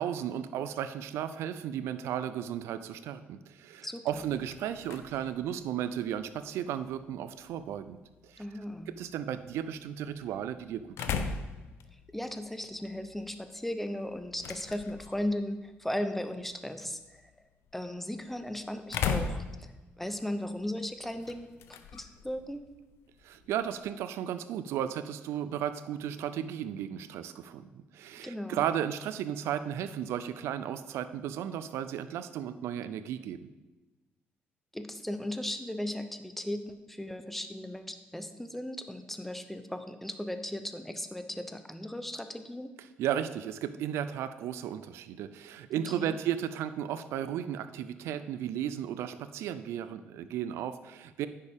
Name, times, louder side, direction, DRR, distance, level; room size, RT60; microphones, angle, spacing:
voice 1, 0.0-8.0 8.3-8.4 8.9-11.4 23.2-33.5 43.0-51.3, right 10 dB, 85° right, 12 dB, 0.5 m, -34 dB
voice 2, 3.8-4.3 8.4-9.0 12.1-17.3 17.7-19.7 20.0-21.5 21.9-22.7 28.2-28.6 34.7-42.7 45.9-46.2, left 1 dB, 5° left, 8 dB, 0.7 m, -37 dB
sound 1, 4.1-23.9, left 6 dB, 80° left, 0.6 m, -41 dB
9.6 x 6.6 x 3.6 m, 1.2 s
cardioid pair, 95°, 4 cm